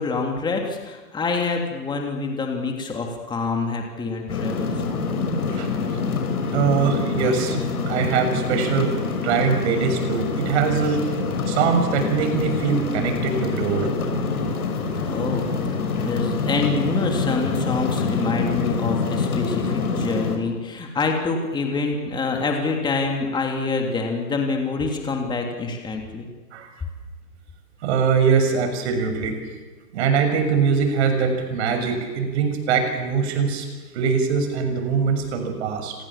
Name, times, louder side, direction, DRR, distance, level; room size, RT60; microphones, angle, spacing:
voice 1, 0.0-5.1 15.0-15.7 16.0-26.3, left 4 dB, 10° left, 2 dB, 3.0 m, -26 dB
sound 1, 4.3-20.4, left 4 dB, 65° left, 6.3 m, -26 dB
voice 2, 5.5-6.0 6.5-8.9 9.2-11.0 11.5-13.9 26.5-26.7 27.8-29.3 29.9-33.7 33.9-35.9, right 6 dB, 45° right, 6 dB, 6.8 m, -22 dB
28.5 x 26.5 x 7.4 m, 1.3 s
hypercardioid pair, 140°, 47 cm